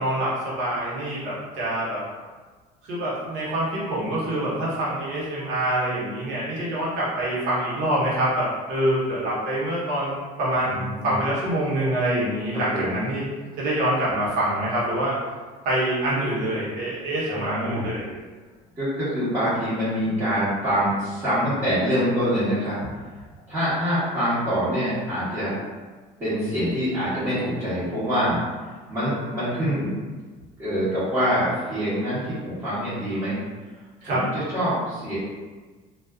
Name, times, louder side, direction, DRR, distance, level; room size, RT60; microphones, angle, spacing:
voice 1, 0.0-2.0 2.8-13.2 13.6-15.1 15.6-18.1 34.0-34.2, right 1 dB, 70° right, -8 dB, 0.9 m, -25 dB
voice 2, 10.7-11.1 12.7-13.0 17.3-17.8 18.8-22.8 23.5-25.5 26.2-28.4 28.9-30.0 30.6-33.4 34.0-35.2, equal, 20° right, -15 dB, 1.0 m, -25 dB
2.4 x 2.3 x 2.3 m, 1.3 s
cardioid pair, 165°, 15 cm